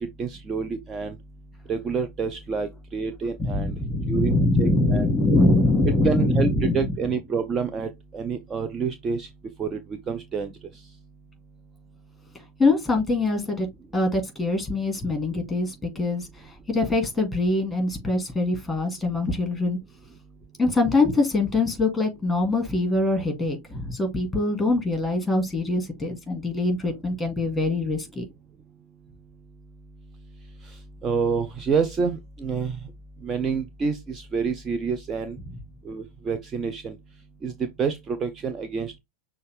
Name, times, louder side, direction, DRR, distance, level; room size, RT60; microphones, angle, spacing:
voice 1, 0.2-1.2 1.7-3.8 4.1-5.1 6.0-9.3 9.6-10.5 31.0-32.8 33.2-35.4 35.9-37.0 37.4-39.0, right 5 dB, 25° right, 0.5 m, -28 dB
voice 2, 3.4-7.0 12.6-13.7 13.9-19.8 20.6-28.2, left 2 dB, 5° left, 2.0 m, -23 dB
6.3 x 2.3 x 3.3 m
figure-of-eight pair, 90°, 0 cm